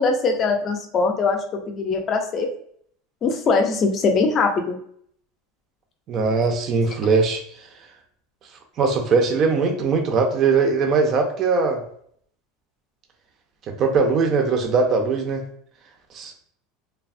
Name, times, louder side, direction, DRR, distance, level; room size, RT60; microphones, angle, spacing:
voice 1, 0.0-2.5 3.2-4.8, left 4 dB, 35° left, 5 dB, 0.5 m, -21 dB
voice 2, 6.1-7.4 8.8-11.8 13.8-15.4 16.1-16.3, right 4 dB, 35° right, 3 dB, 0.4 m, -20 dB
3.2 x 2.0 x 2.5 m, 0.64 s
supercardioid pair, 140°, 0 cm